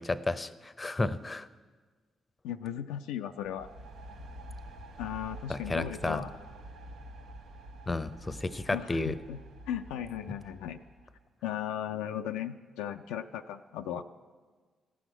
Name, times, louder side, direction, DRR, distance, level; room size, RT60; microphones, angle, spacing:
voice 1, 0.0-1.5 5.5-6.2 7.9-9.2, left 2 dB, 30° left, 15 dB, 0.6 m, -32 dB
voice 2, 2.4-3.7 5.0-6.4 8.7-9.4 9.7-10.8 11.4-14.0, left 10 dB, 80° left, 6 dB, 0.3 m, -36 dB
sound 1, 3.4-11.2, right 1 dB, 70° right, 0.7 m, -47 dB
15.5 x 6.3 x 9.0 m, 1.5 s
hypercardioid pair, 40°, 0 cm